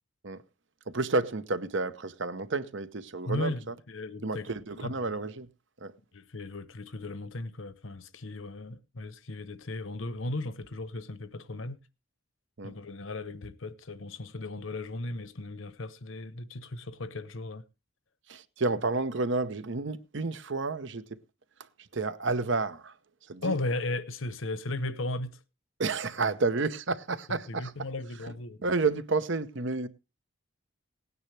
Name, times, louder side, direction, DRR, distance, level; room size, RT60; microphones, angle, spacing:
voice 1, 0.9-3.7 4.2-5.5 5.8-5.9 12.6-12.7 18.3-21.0 21.8-23.0 23.2-23.6 25.8-27.7 28.6-29.9, right 3 dB, 60° right, 0.9 m, -30 dB
voice 2, 3.3-5.2 6.1-11.8 12.6-17.6 23.4-25.4 27.3-28.6, left 2 dB, 70° left, 1.0 m, -36 dB
18.0 x 9.6 x 3.3 m
head